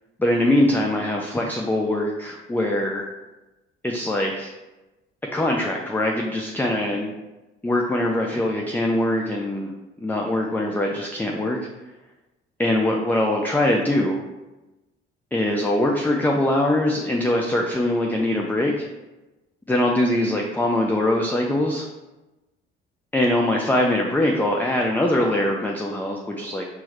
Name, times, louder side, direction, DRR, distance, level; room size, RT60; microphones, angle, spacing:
voice 1, 0.2-3.0 3.8-4.5 5.3-7.1 7.6-9.7 10.0-11.6 12.6-14.2 15.3-18.9 19.7-21.9 23.1-26.6, left 1 dB, 5° left, 0 dB, 0.4 m, -22 dB
4.6 x 2.1 x 4.4 m, 1.1 s
hypercardioid pair, 55°, 30 cm